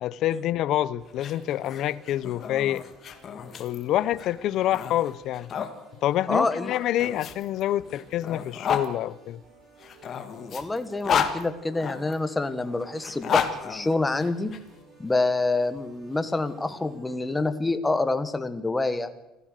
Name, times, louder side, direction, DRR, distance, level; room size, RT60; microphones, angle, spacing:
voice 1, 0.0-2.8 3.6-5.5 6.0-9.4, left 13 dB, 45° left, 0.7 m, -27 dB
sound 1, 1.0-17.2, right 3 dB, 25° right, 7.9 m, -54 dB
sound 2, 1.1-5.7 6.7-8.9 9.8-12.2 13.0-14.6, left 7 dB, 30° left, 2.0 m, -31 dB
voice 2, 6.3-6.8 10.5-14.5 15.0-19.1, left 2 dB, 10° left, 1.3 m, -27 dB
27.0 x 15.0 x 6.7 m
cardioid pair, 175°, 0 cm